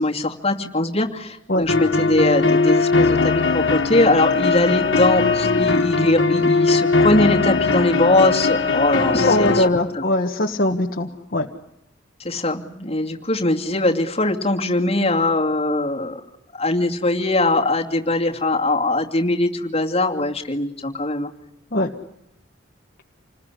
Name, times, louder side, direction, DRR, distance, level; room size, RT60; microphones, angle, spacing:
voice 1, 0.0-9.6 9.9-10.0 12.2-16.2 16.5-21.3, left 2 dB, 30° left, 1 dB, 2.5 m, -21 dB
sound 1, 1.7-9.7, left 4 dB, 65° left, 2.1 m, -19 dB
voice 2, 9.2-11.5 21.7-21.9, left 1 dB, 50° left, 1 dB, 1.4 m, -21 dB
28.5 x 20.5 x 9.9 m, 0.81 s
head